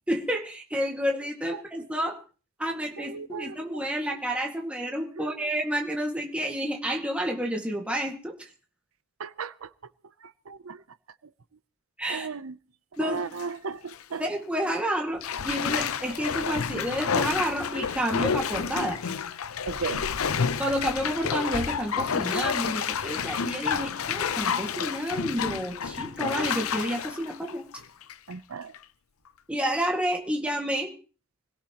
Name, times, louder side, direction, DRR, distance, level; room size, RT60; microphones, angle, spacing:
voice 1, 0.1-2.2 2.6-8.5 12.0-12.3 13.0-13.2 14.2-19.0 20.6-27.6 29.5-30.9, equal, 5° right, 1.9 m, -30 dB
voice 2, 3.0-3.9 5.2-5.5 9.2-9.7 10.2-10.8 12.1-12.6 13.0-14.2 14.6-14.7 19.7-20.0 28.3-28.7, right 5 dB, 80° right, 0.7 m, -36 dB
Bathtub (filling or washing), 13.0-13.5 13.9-14.0 15.2-28.3 28.7-28.8, left 6 dB, 85° left, 0.7 m, -30 dB
26.0 x 17.0 x 3.0 m
head